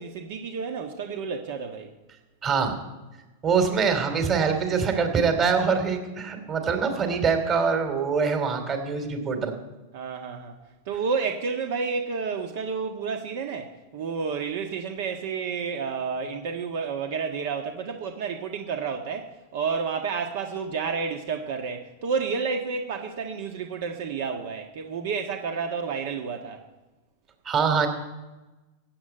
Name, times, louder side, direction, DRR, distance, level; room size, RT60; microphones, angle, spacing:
voice 1, 0.0-1.9 9.9-10.6 10.8-26.6, right 5 dB, 65° right, 4 dB, 1.4 m, -30 dB
voice 2, 2.4-2.8 3.4-9.5 27.4-27.9, right 5 dB, 30° right, 6 dB, 2.9 m, -24 dB
15.5 x 8.0 x 8.9 m, 1.1 s
hypercardioid pair, 125°, 0 cm